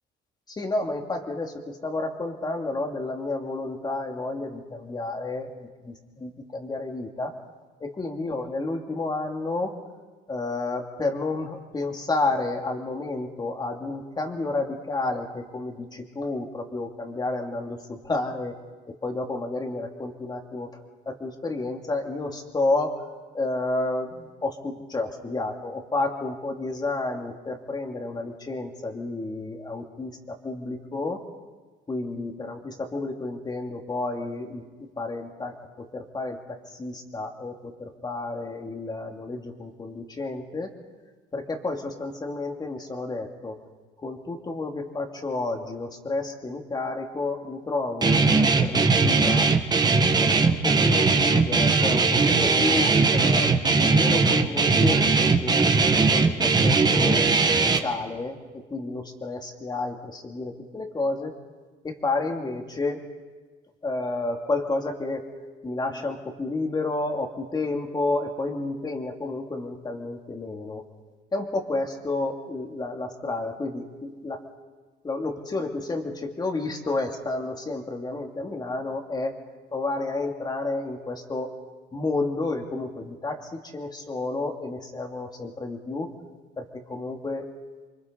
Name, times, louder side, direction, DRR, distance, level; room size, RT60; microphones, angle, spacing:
voice 1, 0.5-7.4 7.8-9.7 10.3-18.6 18.9-20.8 21.1-31.2 31.9-40.7 41.3-43.6 44.0-49.5 50.2-55.7 55.9-61.3 61.8-63.1 63.8-65.3 65.6-70.8 71.3-74.4 75.0-79.4 79.7-81.5 81.9-86.1 86.6-87.5, left 2 dB, 25° left, 2 dB, 2.7 m, -31 dB
Guitar, 48.0-57.8, right 4 dB, 25° right, 1.4 m, -20 dB
29.0 x 24.0 x 4.1 m, 1.3 s
cardioid pair, 110°, 17 cm